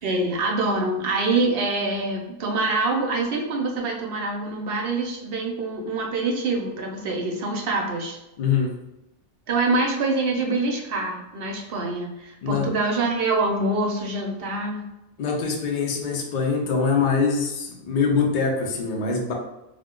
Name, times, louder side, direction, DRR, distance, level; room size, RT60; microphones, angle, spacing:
voice 1, 0.0-8.2 9.5-14.8, right 3 dB, 60° right, 1 dB, 0.6 m, -25 dB
voice 2, 8.4-8.7 12.4-12.8 15.2-19.3, left 5 dB, 60° left, 0 dB, 0.5 m, -24 dB
2.4 x 2.2 x 3.5 m, 0.94 s
omnidirectional pair, 1.4 m